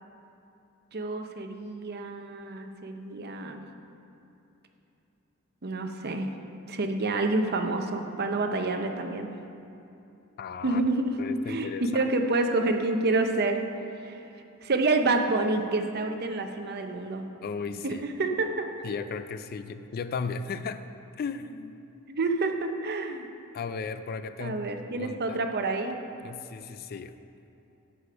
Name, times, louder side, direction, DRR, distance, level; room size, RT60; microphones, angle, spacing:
voice 1, 0.9-3.6 5.6-6.3 6.7-9.4 10.6-11.2 11.5-13.6 14.0-14.2 14.6-17.3 17.8-18.7 22.1-23.3 24.4-26.0, right 2 dB, 50° right, 5 dB, 0.7 m, -28 dB
voice 2, 10.4-10.8 11.2-12.1 17.4-18.0 18.8-20.8 21.2-21.8 23.5-24.6 24.9-25.4 26.2-27.2, left 5 dB, 45° left, 11 dB, 0.3 m, -35 dB
13.5 x 5.0 x 5.0 m, 2.8 s
head